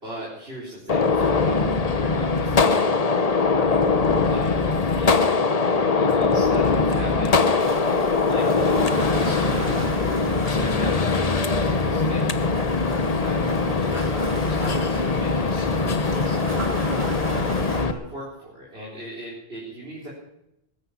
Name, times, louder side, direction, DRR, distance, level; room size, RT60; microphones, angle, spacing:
voice 1, 0.0-3.0 4.3-7.5 8.3-9.7 10.3-12.4 13.2-16.5 17.3-20.1, equal, 70° right, -5 dB, 4.6 m, -38 dB
Gunshot gunfire, 0.9-17.9, left 4 dB, 40° left, 1.0 m, -22 dB
sound 1, 7.6-17.8, right 1 dB, 85° right, 3.5 m, -35 dB
21.5 x 10.0 x 5.8 m, 0.83 s
omnidirectional pair, 1.1 m